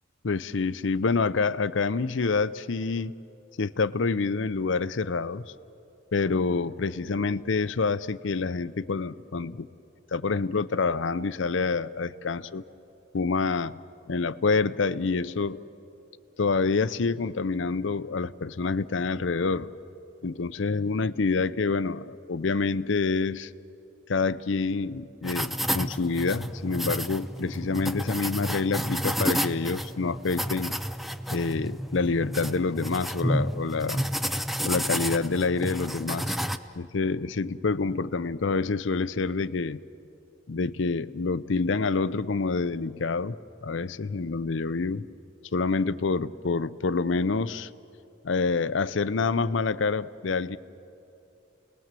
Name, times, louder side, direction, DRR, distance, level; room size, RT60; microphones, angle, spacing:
voice 1, 0.2-3.1 3.6-5.5 6.1-9.7 10.1-12.6 13.1-13.8 14.1-15.6 16.4-19.7 20.2-23.5 24.1-30.8 31.3-34.1 34.6-36.4 36.8-39.8 40.5-43.4 43.6-45.1 45.5-47.7 48.2-50.6, left 4 dB, 70° left, 16 dB, 0.6 m, -27 dB
sound 1, 25.2-36.6, equal, ahead, 0.5 m, -31 dB
29.5 x 20.0 x 7.5 m, 2.8 s
head